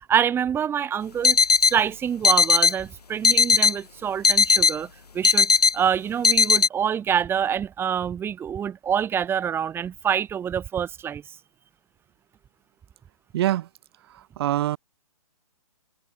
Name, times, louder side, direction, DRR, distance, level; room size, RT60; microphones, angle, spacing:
voice 1, 0.1-1.4 1.6-4.9 5.1-11.2, right 8 dB, 10° right, 5.3 m, -26 dB
sound 1, 1.2-1.7 2.2-2.8 3.2-3.8 4.2-4.8 5.2-5.8 6.2-6.7, left 5 dB, 90° left, 4.7 m, -18 dB
voice 2, 13.3-13.7 14.4-14.8, right 13 dB, 40° right, 4.7 m, -23 dB
hypercardioid pair, 155°, 19 cm